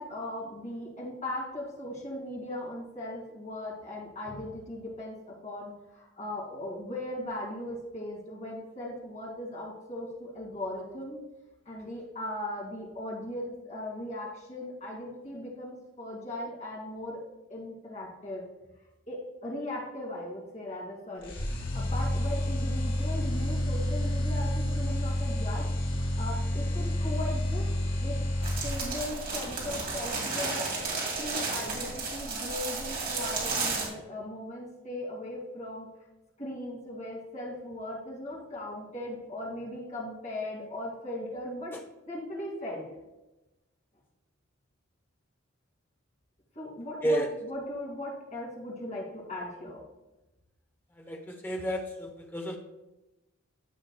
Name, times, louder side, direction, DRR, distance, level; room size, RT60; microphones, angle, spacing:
voice 1, 0.0-11.2 11.7-17.2 17.5-18.4 19.1-27.7 28.0-28.2 28.6-30.7 31.1-35.9 36.4-41.8 42.1-42.9 46.5-49.8, left 1 dB, 35° left, -3 dB, 2.5 m, -38 dB
sound 1, 21.2-29.2, left 1 dB, 60° left, 2.0 m, -29 dB
sound 2, 28.4-33.9, right 3 dB, 45° right, 2.4 m, -33 dB
voice 2, 51.0-52.6, right 1 dB, 10° left, 3 dB, 0.9 m, -31 dB
14.5 x 5.5 x 2.3 m, 1.0 s
head